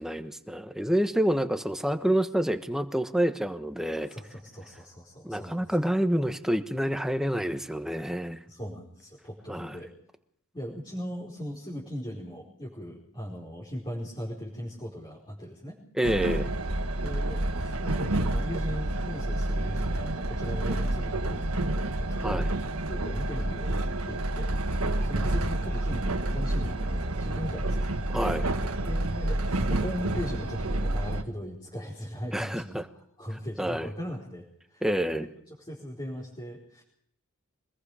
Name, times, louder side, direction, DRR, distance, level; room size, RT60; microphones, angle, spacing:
voice 1, 0.0-4.1 5.2-8.4 9.5-9.8 16.0-16.5 22.2-22.5 28.1-28.5 32.3-32.9 33.6-33.9 34.8-35.3, equal, ahead, 8 dB, 1.2 m, -28 dB
voice 2, 4.1-5.8 8.5-9.9 10.5-15.8 16.9-23.8 24.0-24.5 25.0-27.8 28.9-34.8 35.1-35.2 35.7-36.8, equal, 25° left, -4 dB, 4.8 m, -38 dB
Train, 16.0-31.2, right 1 dB, 85° right, 1.5 m, -29 dB
25.0 x 21.0 x 5.0 m, 0.71 s
head